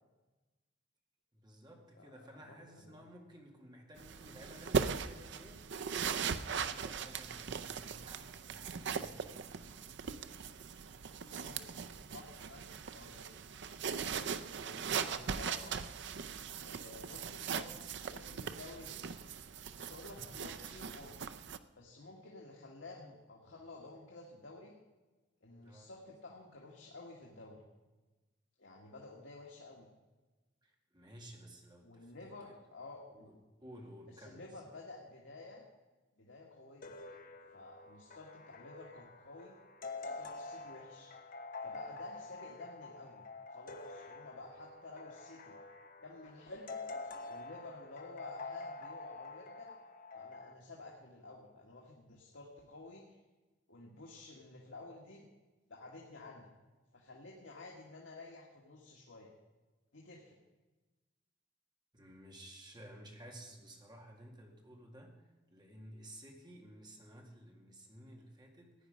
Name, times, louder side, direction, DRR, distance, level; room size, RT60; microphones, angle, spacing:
voice 1, 1.3-9.5 25.6-25.9 30.6-32.1 33.1-33.3 33.6-34.5 61.9-65.2 65.5-68.8, equal, 25° right, 1 dB, 2.1 m, -54 dB
voice 2, 1.9-3.1 11.3-11.7 12.1-12.7 12.9-13.3 14.3-15.8 16.6-19.0 19.7-21.2 21.8-24.7 25.4-27.7 28.6-29.9 31.8-33.3 34.1-35.7 36.2-37.0 37.5-39.6 40.0-41.1 41.6-43.2 43.5-45.6 46.0-46.8 47.3-49.8 50.1-53.2 53.7-55.3 55.7-56.5 56.9-59.3 59.9-60.4, left 2 dB, 80° left, -1 dB, 1.8 m, -52 dB
sound 1, 4.0-21.6, right 6 dB, 65° right, 0.6 m, -40 dB
sound 2, 36.8-50.5, left 3 dB, 45° left, 0.9 m, -47 dB
15.5 x 9.7 x 5.1 m, 1.2 s
head